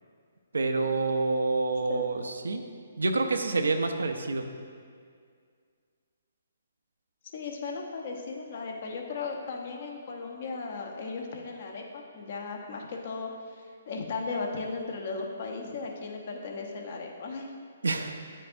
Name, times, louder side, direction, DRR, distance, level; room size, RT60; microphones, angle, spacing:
voice 1, 0.5-2.6 3.0-4.5 17.8-18.1, right 3 dB, 90° right, 5 dB, 0.6 m, -27 dB
voice 2, 7.3-13.3 13.6-17.5, left 4 dB, 55° left, 1 dB, 0.9 m, -36 dB
9.7 x 6.4 x 2.6 m, 2.1 s
hypercardioid pair, 145°, 0 cm